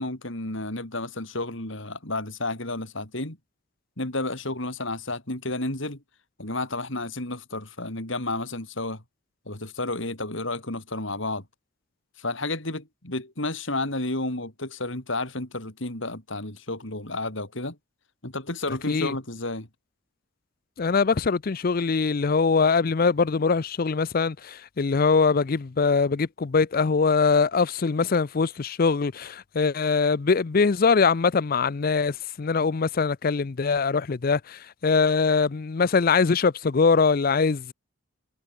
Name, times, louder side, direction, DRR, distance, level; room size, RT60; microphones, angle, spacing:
voice 1, 0.0-3.4 4.0-6.0 6.4-9.0 9.5-11.4 12.2-17.8 18.2-19.7, left 2 dB, 60° left, 4.0 m, -31 dB
voice 2, 18.7-19.2 20.8-37.7, left 4 dB, 45° left, 0.5 m, -22 dB
head